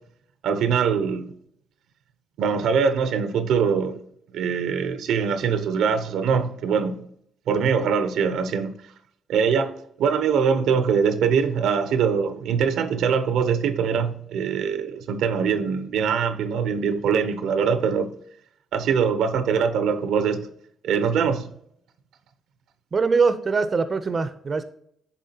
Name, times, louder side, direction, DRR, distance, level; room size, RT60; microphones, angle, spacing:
voice 1, 0.4-1.3 2.4-4.0 4.3-7.1 7.5-8.7 9.3-18.1 18.7-20.5 20.8-21.5, right 6 dB, 80° right, 0.6 m, -23 dB
voice 2, 22.9-24.6, right 4 dB, 40° right, 0.5 m, -22 dB
10.0 x 3.7 x 2.8 m
cardioid pair, 90°, 0 cm